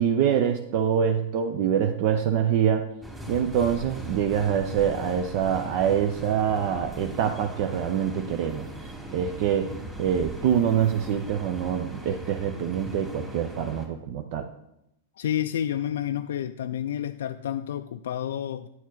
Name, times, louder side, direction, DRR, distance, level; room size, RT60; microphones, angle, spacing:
voice 1, 0.0-2.9 3.3-9.7 10.0-14.5, right 8 dB, 50° right, 6 dB, 0.6 m, -25 dB
sound 1, 3.0-13.9, right 1 dB, 10° right, 2.2 m, -39 dB
voice 2, 15.2-18.7, left 10 dB, 70° left, 8 dB, 0.3 m, -30 dB
9.2 x 6.2 x 4.0 m, 0.83 s
hypercardioid pair, 100°, 0 cm